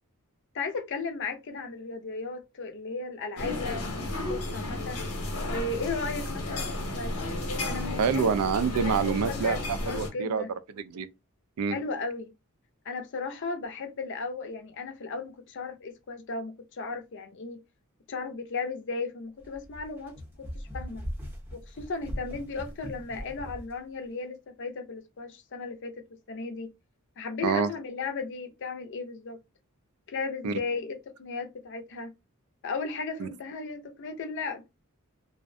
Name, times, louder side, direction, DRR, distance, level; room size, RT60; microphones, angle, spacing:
voice 1, 0.5-5.0 5.4-6.7 6.9-7.3 7.7-8.3 8.8-9.0 9.3-10.5 11.7-12.3 12.9-17.6 18.1-21.1 21.5-26.7 27.2-29.4 30.1-32.1 32.6-34.6, left 4 dB, 55° left, 0.5 m, -35 dB
sound 1, 3.4-10.1, left 2 dB, 85° left, 0.8 m, -33 dB
voice 2, 8.0-9.6 9.9-10.4 10.8-11.1 11.6-11.8 27.4-27.7 30.4-30.5 33.2-33.3, right 6 dB, 80° right, 0.4 m, -26 dB
sound 2, 19.4-23.7, equal, 10° right, 0.6 m, -40 dB
2.5 x 2.0 x 2.5 m
head